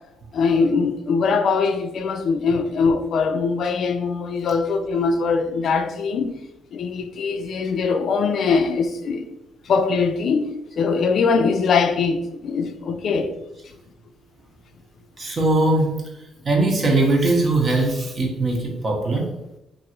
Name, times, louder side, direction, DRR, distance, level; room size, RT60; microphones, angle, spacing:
voice 1, 0.3-6.4 6.7-9.3 9.7-10.5 10.8-13.3, left 5 dB, 65° left, 0.4 m, -22 dB
voice 2, 15.2-16.0 16.4-19.3, right 2 dB, 40° right, 0.9 m, -20 dB
3.0 x 2.6 x 2.9 m
cardioid pair, 90°, 0 cm